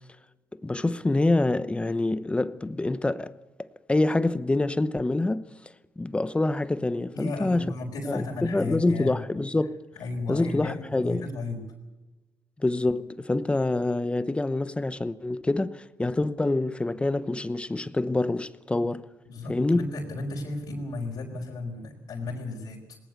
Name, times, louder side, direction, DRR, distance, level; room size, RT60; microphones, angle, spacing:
voice 1, 0.6-3.3 3.6-5.5 6.0-7.6 8.1-9.8 10.3-11.3 12.6-19.0 19.5-19.9, left 2 dB, 15° left, 0.9 m, -26 dB
voice 2, 7.1-9.2 10.0-11.7 19.3-23.0, left 3 dB, 75° left, 4.6 m, -34 dB
19.0 x 19.0 x 8.2 m
cardioid pair, 85°, 7 cm